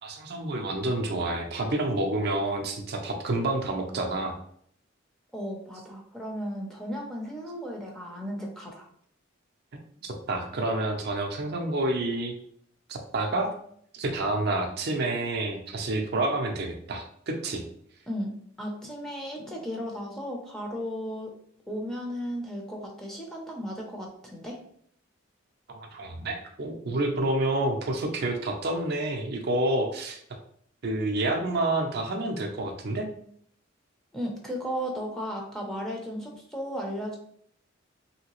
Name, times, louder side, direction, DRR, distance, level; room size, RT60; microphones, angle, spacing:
voice 1, 0.0-4.3 10.0-12.3 12.9-13.5 13.9-17.6 25.7-30.2 30.8-33.0, right 2 dB, 50° right, 3 dB, 0.5 m, -29 dB
voice 2, 5.3-8.9 18.1-18.3 18.6-21.3 21.7-24.6 34.1-37.2, equal, ahead, -1 dB, 0.6 m, -35 dB
3.1 x 2.8 x 3.0 m, 0.64 s
head